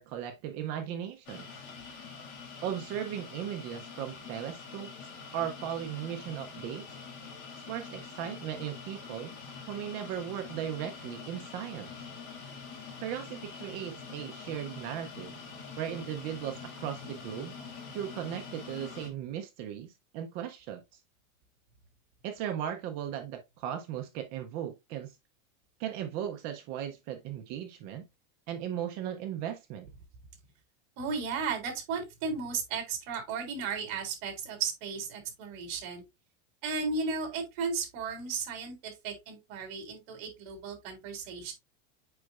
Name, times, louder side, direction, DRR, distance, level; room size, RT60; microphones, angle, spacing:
voice 1, 0.0-1.5 2.6-4.9 5.3-6.9 7.7-9.3 9.7-11.9 13.0-15.3 15.8-17.6 17.9-20.8 22.2-25.2 25.8-28.0 28.5-29.9, right 10 dB, 25° right, 0.5 m, -37 dB
sound 1, 1.3-19.1, left 5 dB, 40° left, 2.6 m, -45 dB
voice 2, 31.0-36.0 36.6-41.5, right 5 dB, 50° right, 3.5 m, -35 dB
7.7 x 5.3 x 2.3 m
supercardioid pair, 175°, 40 cm